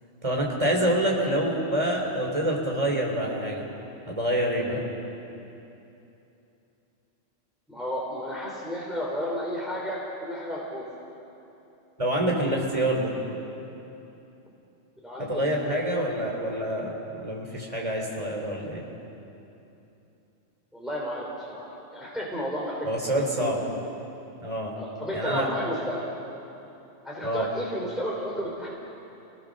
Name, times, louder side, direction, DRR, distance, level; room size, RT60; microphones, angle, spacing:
voice 1, 0.2-3.7 4.1-4.8 12.0-13.1 15.2-18.8 22.8-23.6 24.4-24.7 25.1-25.5 27.2-27.5, right 1 dB, 25° right, -1 dB, 3.8 m, -26 dB
voice 2, 7.7-10.9 15.0-16.0 20.7-22.9 23.2-23.6 24.8-26.1 27.0-28.8, equal, ahead, -5 dB, 3.7 m, -33 dB
29.0 x 18.5 x 6.6 m, 2.9 s
omnidirectional pair, 1.3 m